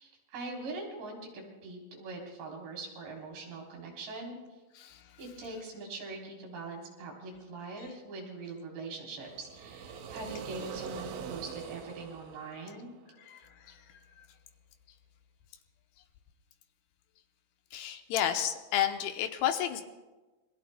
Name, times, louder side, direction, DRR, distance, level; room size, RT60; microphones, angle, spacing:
voice 1, 0.0-4.4 5.2-12.9, right 3 dB, 65° right, -1 dB, 5.6 m, -42 dB
sound 1, 9.2-13.2, right 7 dB, 80° right, 3.3 m, -43 dB
voice 2, 13.3-14.2 17.7-19.8, left 10 dB, 80° left, 5 dB, 2.4 m, -32 dB
28.0 x 21.5 x 2.2 m, 1.2 s
omnidirectional pair, 5.5 m